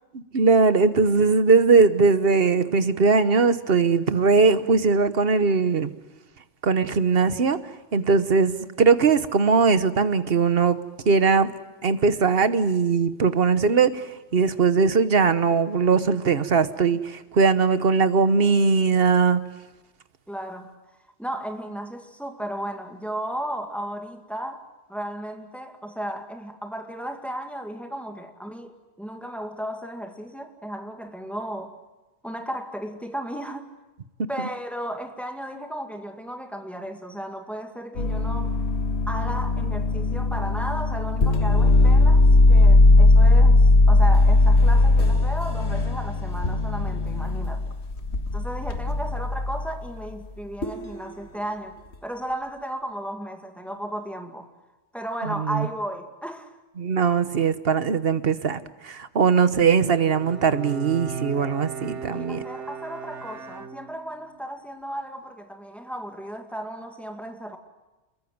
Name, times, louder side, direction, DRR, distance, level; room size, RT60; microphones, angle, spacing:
voice 1, 0.3-5.9 6.6-7.6 7.9-10.8 11.1-11.5 11.8-14.0 14.3-19.4 55.3-55.7 56.8-58.6 58.8-62.4, right 5 dB, 55° right, 1.3 m, -20 dB
voice 2, 20.3-20.8 21.2-31.8 32.2-33.7 34.3-38.6 39.1-47.6 48.3-51.8 52.0-54.5 54.9-56.6 61.9-67.6, right 1 dB, ahead, 2.2 m, -34 dB
sound 1, 38.0-49.7 50.6-51.0, left 2 dB, 70° left, 1.9 m, -18 dB
Bowed string instrument, 59.9-64.3, right 5 dB, 85° right, 1.6 m, -36 dB
28.5 x 22.0 x 9.5 m
omnidirectional pair, 1.2 m